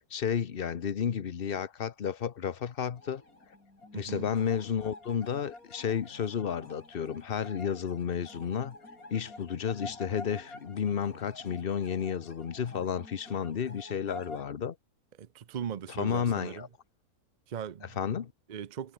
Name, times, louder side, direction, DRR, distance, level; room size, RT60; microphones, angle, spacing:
voice 1, 0.1-3.2 3.9-8.7 9.1-14.8 15.9-16.7 18.0-18.3, left 7 dB, 45° left, 1.0 m, -32 dB
sound 1, 2.9-14.4, left 2 dB, 70° left, 6.4 m, -48 dB
voice 2, 3.9-4.3 15.2-16.7 17.5-18.0 18.5-18.9, right 8 dB, 55° right, 0.5 m, -39 dB
omnidirectional pair, 1.6 m